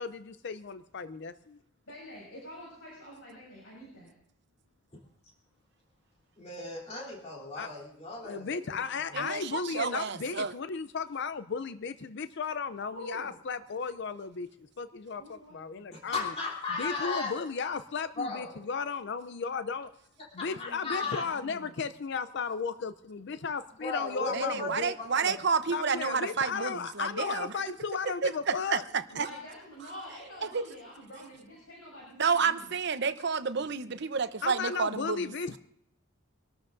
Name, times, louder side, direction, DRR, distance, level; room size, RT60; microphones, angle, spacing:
voice 1, 0.0-1.6 7.6-7.7 8.2-14.5 14.8-16.3 16.7-19.9 20.3-24.9 25.7-28.8 34.4-35.6, left 5 dB, 60° left, 0.5 m, -35 dB
voice 2, 1.9-4.1 9.1-9.3 9.8-10.0 12.9-13.4 15.2-15.9 20.5-21.8 29.1-32.7, equal, 90° left, 7.1 m, -47 dB
voice 3, 6.4-8.8 15.9-17.3 17.6-17.7 18.2-18.6 20.4-21.3 23.8-24.7 24.9-25.3, left 3 dB, 30° left, 3.5 m, -36 dB
voice 4, 9.1-10.5 24.3-27.5 28.2-29.3 30.5-30.6 32.2-35.3, right 5 dB, 55° right, 0.8 m, -30 dB
26.0 x 13.0 x 2.6 m
head